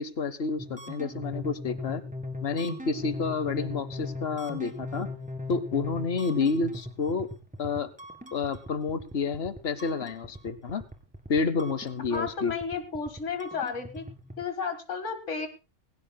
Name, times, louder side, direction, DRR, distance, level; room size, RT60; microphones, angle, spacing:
voice 1, 0.0-2.0 2.4-5.1 5.5-7.3 7.6-7.9 8.3-10.8 11.3-12.5, left 4 dB, 55° left, 14 dB, 1.0 m, -29 dB
sound 1, 0.6-14.4, left 2 dB, 5° right, 1.8 m, -39 dB
voice 2, 12.1-14.1 14.4-15.5, left 5 dB, 75° left, 8 dB, 2.1 m, -33 dB
21.0 x 17.0 x 2.2 m, 0.30 s
omnidirectional pair, 1.3 m